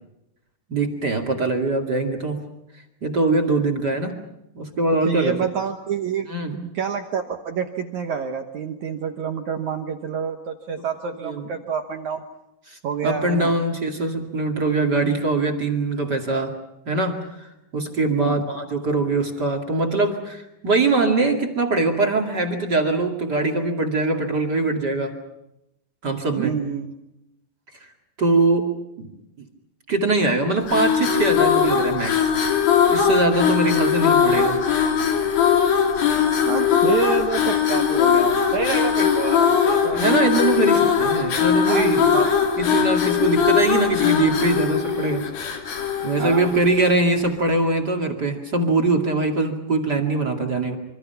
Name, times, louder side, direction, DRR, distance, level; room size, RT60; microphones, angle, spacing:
voice 1, 0.7-2.4 3.0-4.1 4.5-5.4 6.3-6.6 11.2-11.5 12.7-16.5 16.9-25.1 26.0-26.5 27.8-27.9 28.2-28.7 29.0-29.1 29.9-32.3 32.9-34.6 39.9-42.2 42.6-45.6 46.0-50.8, right 2 dB, 35° right, 2 dB, 1.9 m, -22 dB
voice 2, 5.1-6.3 6.5-12.2 12.8-13.5 18.1-18.4 26.4-26.9 36.5-40.0 40.7-40.8 41.7-41.9 42.1-42.3 42.6-42.8 46.2-46.5, right 7 dB, 70° right, 5 dB, 1.8 m, -27 dB
sound 1, 30.6-47.1, left 7 dB, 60° left, 4.3 m, -20 dB
26.5 x 25.5 x 5.8 m, 0.88 s
omnidirectional pair, 4.9 m